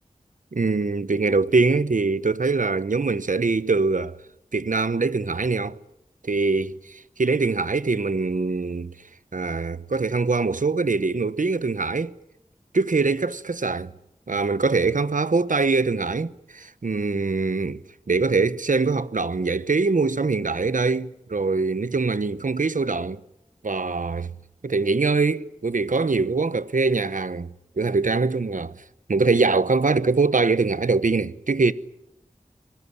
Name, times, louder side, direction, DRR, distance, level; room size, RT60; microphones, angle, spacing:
voice 1, 0.5-4.2 4.5-5.8 6.2-8.9 9.3-12.1 12.7-13.9 14.3-17.8 18.1-23.2 23.6-24.3 24.6-27.5 27.8-28.7 29.1-31.7, right 4 dB, 80° right, 1.0 m, -23 dB
25.5 x 20.0 x 9.9 m
wide cardioid pair, 40°, 13 cm